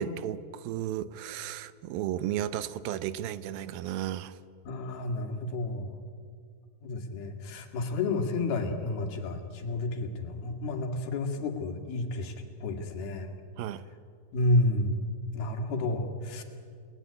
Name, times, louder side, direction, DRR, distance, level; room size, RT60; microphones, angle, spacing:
voice 1, 0.0-4.4 13.6-13.8, right 11 dB, 80° right, 14 dB, 2.5 m, -34 dB
voice 2, 4.7-6.0 6.8-13.4 14.3-15.0 15.3-16.4, left 2 dB, 80° left, 4 dB, 4.2 m, -31 dB
29.5 x 20.0 x 9.8 m, 2.2 s
omnidirectional pair, 4.4 m